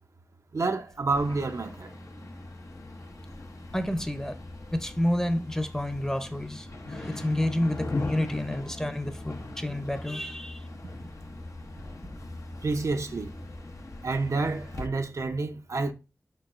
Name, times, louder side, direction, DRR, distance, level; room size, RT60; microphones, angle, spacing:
voice 1, 0.5-1.9 12.6-13.4 14.0-15.9, right 3 dB, 70° right, 0.5 m, -29 dB
sound 1, 1.1-14.9, left 2 dB, 80° left, 0.7 m, -40 dB
voice 2, 3.7-4.4 4.7-10.7, left 1 dB, 10° left, 0.6 m, -29 dB
4.6 x 4.5 x 2.4 m
wide cardioid pair, 60°, 5 cm